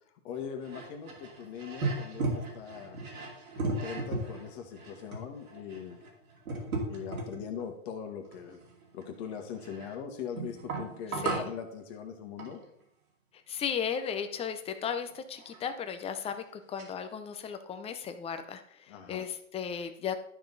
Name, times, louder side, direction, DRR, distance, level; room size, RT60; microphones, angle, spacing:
voice 1, 0.2-3.3 3.6-6.0 6.9-8.6 8.9-12.6 18.9-19.3, left 7 dB, 50° left, 5 dB, 1.6 m, -41 dB
sound 1, 0.6-7.7 8.2-9.9 10.4-11.6 12.4-12.6 15.1-15.2 15.4-15.6 16.3-16.4 16.8-16.9, right 3 dB, 90° right, 2.7 m, -36 dB
voice 2, 11.1-11.5 13.5-20.1, left 7 dB, 15° left, 9 dB, 0.6 m, -35 dB
11.5 x 5.4 x 4.0 m, 0.69 s
hypercardioid pair, 125°, 41 cm